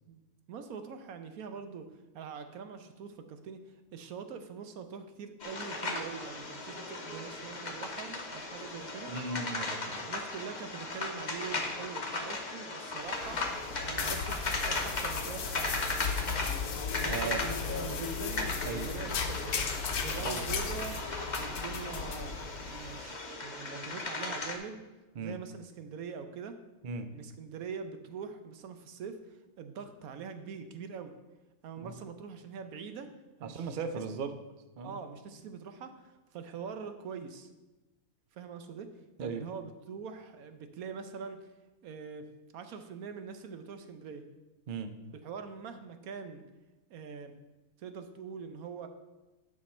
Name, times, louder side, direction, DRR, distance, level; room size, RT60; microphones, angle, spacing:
voice 1, 0.5-3.6 3.9-9.1 10.1-13.4 13.8-15.6 17.0-19.6 20.0-21.0 21.3-24.8 25.2-26.6 27.1-31.1 31.6-33.1 33.4-34.0 34.8-37.5 38.3-38.9 39.2-41.5 41.8-42.3 42.5-44.2 45.2-46.4 46.9-47.3 47.8-48.9, right 6 dB, 70° right, 8 dB, 1.2 m, -43 dB
sound 1, 5.4-24.6, left 3 dB, 35° left, 1.0 m, -37 dB
voice 2, 9.1-10.1 17.0-17.4 18.6-18.9 20.2-20.4 25.2-25.4 26.8-27.1 31.8-31.9 33.4-34.4 34.8-35.0 39.2-39.4 44.7-44.9, right 5 dB, 55° right, 8 dB, 0.5 m, -37 dB
sound 2, 13.0-23.0, left 5 dB, 80° left, 1.3 m, -36 dB
9.8 x 6.0 x 4.3 m, 1.1 s
omnidirectional pair, 1.6 m